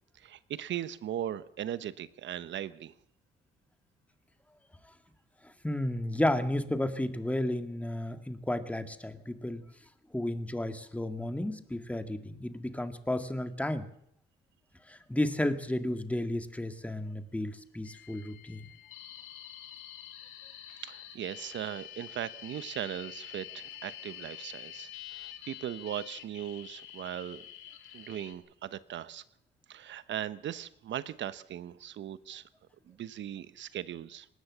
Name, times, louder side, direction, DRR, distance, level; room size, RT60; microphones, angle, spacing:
voice 1, 0.1-2.9 20.8-27.4 27.9-29.2 29.7-32.4 32.9-34.3, right 11 dB, 70° right, 15 dB, 1.0 m, -38 dB
voice 2, 5.6-9.6 10.1-13.8 14.9-18.7, left 1 dB, 5° left, 8 dB, 1.9 m, -32 dB
sound 1, 17.9-28.3, left 12 dB, 85° left, 2.7 m, -47 dB
20.0 x 18.5 x 7.3 m, 0.70 s
cardioid pair, 90°, 20 cm